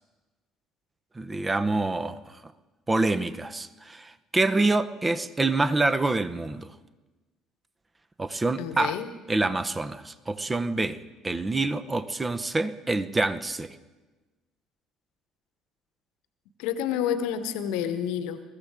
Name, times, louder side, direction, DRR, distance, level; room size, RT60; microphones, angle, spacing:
voice 1, 1.2-2.2 2.9-6.7 8.2-9.0 9.3-11.0 11.2-13.7, right 2 dB, 20° right, 13 dB, 0.8 m, -26 dB
voice 2, 8.6-9.1 16.6-18.4, left 9 dB, 65° left, 11 dB, 1.0 m, -29 dB
22.0 x 13.5 x 3.7 m, 1.2 s
figure-of-eight pair, 55°, 0 cm